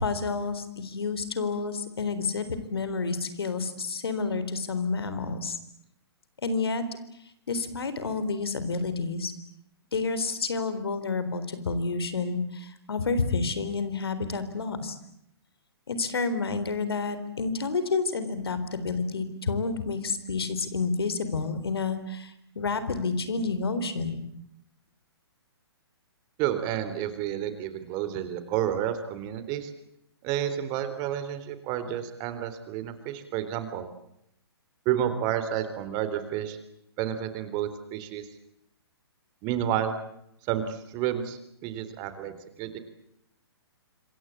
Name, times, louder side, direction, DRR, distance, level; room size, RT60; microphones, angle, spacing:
voice 1, 0.0-5.6 6.4-6.9 7.5-9.3 9.9-15.0 15.9-24.2, left 4 dB, 65° left, 12 dB, 3.9 m, -29 dB
voice 2, 26.4-29.7 30.2-33.9 34.9-36.6 37.0-38.2 39.4-39.9 40.5-42.8, right 10 dB, 30° right, 11 dB, 3.6 m, -30 dB
26.5 x 23.5 x 8.5 m, 0.76 s
figure-of-eight pair, 125°, 14 cm